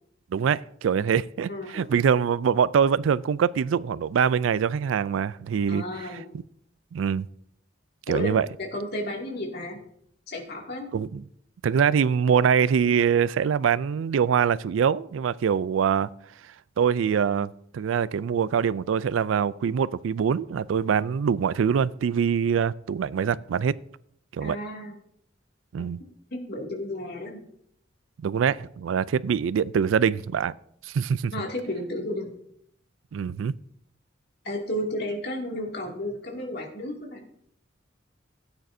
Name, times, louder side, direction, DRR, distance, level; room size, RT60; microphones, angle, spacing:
voice 1, 0.3-5.8 6.9-7.3 8.1-8.5 10.9-11.2 11.6-16.1 16.8-23.7 24.3-24.6 25.7-26.0 28.2-30.5 30.9-31.3 33.1-33.5, right 7 dB, 85° right, 0.3 m, -24 dB
voice 2, 1.5-1.8 5.7-6.2 8.1-9.8 10.3-10.9 24.4-25.0 26.3-27.4 31.3-32.3 34.4-37.3, left 1 dB, 55° left, 2.4 m, -32 dB
16.0 x 8.9 x 2.7 m
head